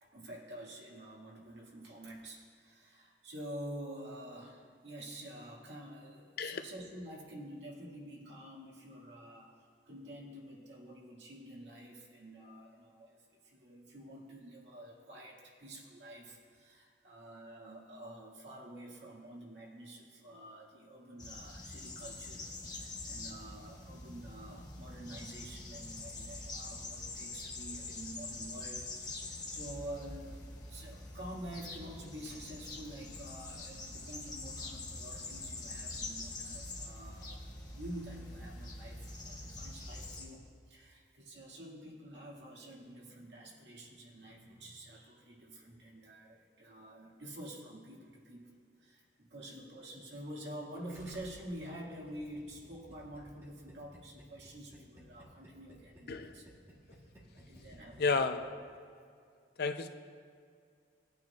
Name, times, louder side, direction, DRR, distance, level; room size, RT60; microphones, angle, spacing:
voice 1, 0.0-9.6 9.9-13.2 13.4-30.4 30.7-37.4 37.7-56.5 57.3-58.5, right 1 dB, 80° right, -3 dB, 2.0 m, -48 dB
sound 1, 21.2-40.2, left 2 dB, 20° left, 1.2 m, -45 dB
Gurgling, 50.9-58.4 58.7-58.8, equal, 15° right, 1.9 m, -57 dB
voice 2, 58.0-58.4 59.6-59.9, left 4 dB, 60° left, 8 dB, 0.5 m, -31 dB
18.5 x 9.0 x 2.4 m, 2.3 s
head